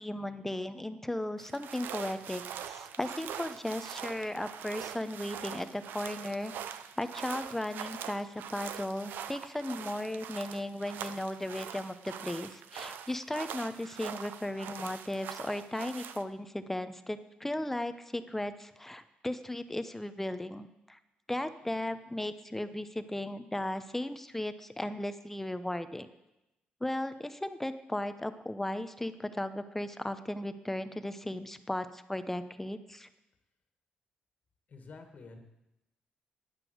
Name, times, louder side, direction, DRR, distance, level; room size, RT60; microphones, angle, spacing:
voice 1, 0.0-6.5 7.0-21.0 21.3-26.1 26.8-33.1, left 1 dB, 10° left, 11 dB, 0.9 m, -36 dB
sound 1, 1.4-16.2, right 9 dB, 85° right, 0.7 m, -43 dB
voice 2, 34.7-35.4, left 3 dB, 50° left, 5 dB, 1.9 m, -49 dB
11.0 x 9.9 x 8.0 m, 0.93 s
cardioid pair, 90°, 3 cm